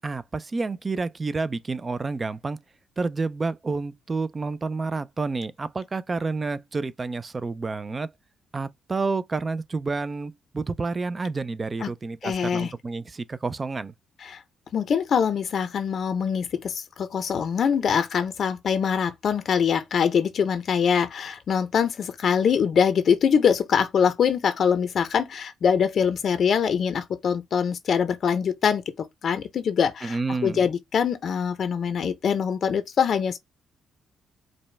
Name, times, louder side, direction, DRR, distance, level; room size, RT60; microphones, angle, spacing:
voice 1, 0.0-2.6 3.0-8.1 8.5-13.9 30.0-30.7, right 3 dB, 30° right, 0.4 m, -29 dB
voice 2, 12.2-12.7 14.2-14.4 14.7-30.2 30.4-33.4, left 7 dB, 55° left, 0.6 m, -23 dB
5.0 x 2.2 x 3.3 m
cardioid pair, 90°, 0 cm